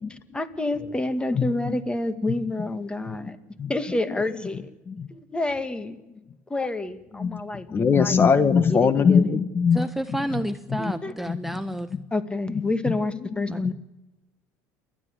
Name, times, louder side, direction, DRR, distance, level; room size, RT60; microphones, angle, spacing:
voice 1, 0.1-3.4 3.7-4.7 5.1-6.0 6.5-8.3 8.7-9.4 10.8-11.1 12.1-13.7, left 2 dB, 15° left, 10 dB, 2.0 m, -29 dB
voice 2, 1.3-1.8 3.1-3.2 3.6-3.7 4.9-5.1 7.2-7.4 7.7-9.8 10.7-10.9 11.3-11.4 12.5-12.6 12.9-13.0, left 6 dB, 30° left, 12 dB, 1.4 m, -21 dB
voice 3, 9.7-11.9 13.5-13.7, right 1 dB, 5° right, 9 dB, 0.9 m, -30 dB
29.0 x 12.5 x 9.7 m, 1.1 s
supercardioid pair, 95°, 7 cm